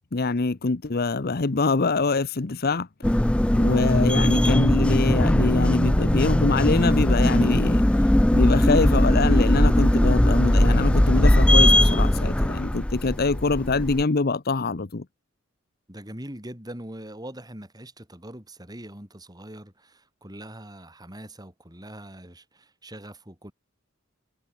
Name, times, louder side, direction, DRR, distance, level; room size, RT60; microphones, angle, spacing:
voice 1, 0.1-2.9 3.6-7.8 8.3-15.0, left 3 dB, 45° left, 0.8 m, -24 dB
sound 1, 3.0-14.0, left 1 dB, 5° left, 0.3 m, -19 dB
voice 2, 15.9-23.5, right 1 dB, 20° right, 6.2 m, -42 dB
head